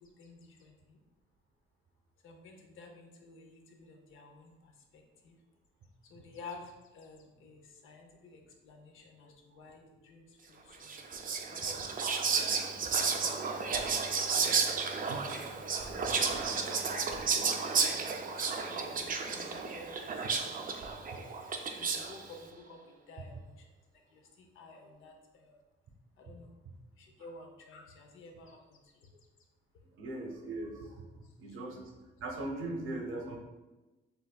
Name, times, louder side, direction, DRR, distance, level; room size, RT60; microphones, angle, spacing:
voice 1, 0.0-1.0 2.2-5.3 6.0-16.2 16.5-17.6 17.9-23.7 24.1-25.6 26.2-26.5 27.0-29.1 31.6-31.7, left 3 dB, 85° left, 3 dB, 0.8 m, -53 dB
Whispering, 10.8-22.2, right 5 dB, 45° right, 0.5 m, -32 dB
voice 2, 30.0-31.0 31.4-31.8 32.2-33.4, right 2 dB, 85° right, 1 dB, 1.0 m, -39 dB
6.7 x 2.6 x 2.3 m, 1.1 s
cardioid pair, 115°, 20 cm